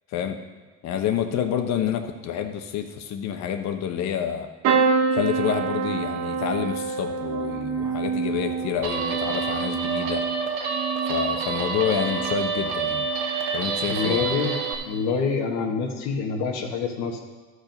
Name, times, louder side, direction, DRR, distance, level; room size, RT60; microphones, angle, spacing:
voice 1, 0.8-4.5 5.1-10.3 11.1-13.1 13.5-14.3, left 9 dB, 60° left, 6 dB, 1.1 m, -28 dB
sound 1, 4.6-12.5 12.9-13.5 14.7-14.9 15.2-15.3, right 5 dB, 50° right, 1.0 m, -27 dB
Guitar, 8.8-14.7, right 5 dB, 80° right, 1.4 m, -28 dB
voice 2, 13.9-14.6 14.9-17.2, left 5 dB, 85° left, 0 dB, 1.5 m, -26 dB
13.0 x 5.1 x 5.3 m, 1.3 s
cardioid pair, 120°, 31 cm